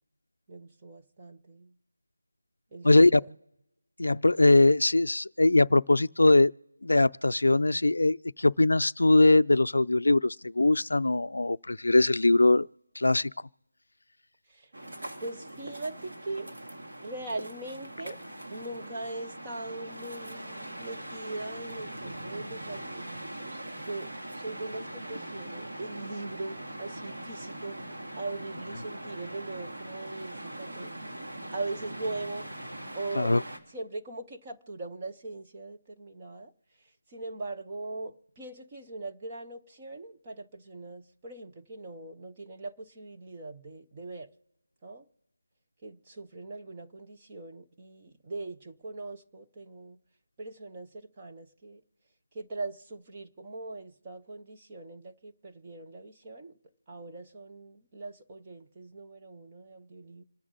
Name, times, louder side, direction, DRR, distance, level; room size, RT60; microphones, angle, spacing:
voice 1, 0.5-1.7 2.7-3.4 14.5-14.7 15.2-16.5 17.0-18.2 18.5-27.8 28.2-31.1 31.5-32.5 32.9-33.3 33.7-36.5 37.1-44.3 44.8-45.0 45.8-50.0 50.4-51.8 52.3-56.6 56.9-60.2, right 2 dB, 10° right, 0.5 m, -40 dB
voice 2, 2.8-3.2 4.0-6.5 6.8-12.7 13.0-13.3 33.2-33.4, left 2 dB, 65° left, 0.4 m, -21 dB
sound 1, 14.7-33.6, right 1 dB, 50° right, 2.3 m, -41 dB
27.0 x 9.9 x 4.0 m
figure-of-eight pair, 180°, 0 cm